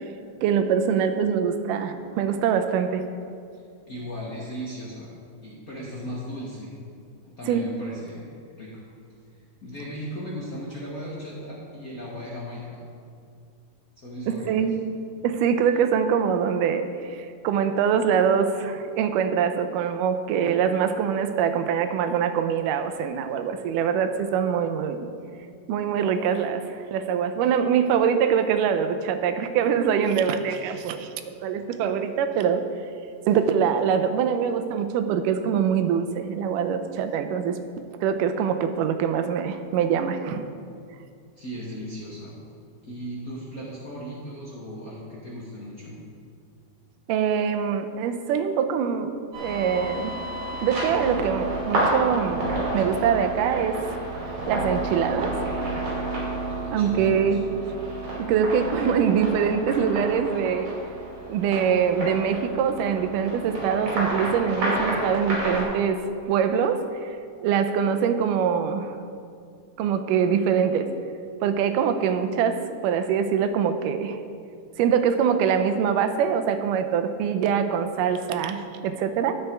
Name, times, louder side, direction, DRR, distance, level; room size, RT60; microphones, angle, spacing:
voice 1, 0.4-3.1 7.5-7.7 14.3-14.7 15.2-25.1 25.7-32.6 33.3-37.6 38.0-40.4 47.1-49.1 49.4-50.1 50.5-53.8 54.5-55.4 56.7-57.5 58.2-60.7 61.3-67.2 67.4-69.0 69.8-70.9 71.4-74.2 74.8-79.3, right 7 dB, 85° right, 8 dB, 2.2 m, -24 dB
voice 2, 3.9-5.1 5.4-6.8 7.2-8.3 8.6-8.8 9.6-12.8 14.0-14.7 41.4-42.4 42.8-46.0 56.6-57.4, equal, 45° left, -7 dB, 1.2 m, -37 dB
sound 1, 49.3-65.6, right 1 dB, 60° right, 4.0 m, -30 dB
10.5 x 8.1 x 4.5 m, 2.3 s
omnidirectional pair, 3.7 m